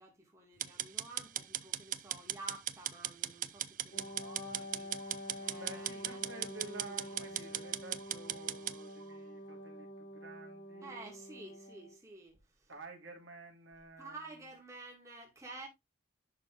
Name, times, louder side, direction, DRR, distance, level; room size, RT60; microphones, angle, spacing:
voice 1, 0.0-6.6 6.9-7.5 10.8-12.7 14.0-15.7, right 2 dB, 15° right, 2.3 m, -51 dB
sound 1, 0.6-8.8, right 12 dB, 40° right, 0.5 m, -38 dB
Wind instrument woodwind instrument, 3.9-12.0, equal, 40° left, 1.9 m, -47 dB
voice 2, 3.9-4.4 5.6-10.9 12.7-14.3, right 2 dB, 65° right, 3.2 m, -51 dB
sound 2, 4.0-4.7 5.0-5.7 6.0-6.7 7.0-7.7 8.0-8.7 9.0-9.7, right 5 dB, 90° right, 1.9 m, -62 dB
11.5 x 4.2 x 3.4 m
head